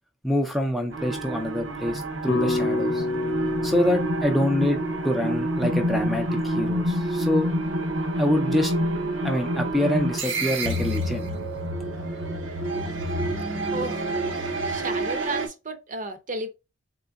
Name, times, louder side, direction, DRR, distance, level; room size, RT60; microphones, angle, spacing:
voice 1, 0.2-3.0 3.6-7.5 8.2-8.7 9.2-11.3, left 1 dB, ahead, 0.4 m, -26 dB
sound 1, 0.9-15.5, right 1 dB, 70° right, 0.8 m, -28 dB
sound 2, 2.3-6.5, left 2 dB, 85° left, 0.7 m, -30 dB
voice 2, 13.7-14.0 14.6-16.5, right 2 dB, 40° right, 0.7 m, -32 dB
3.8 x 3.2 x 2.3 m
head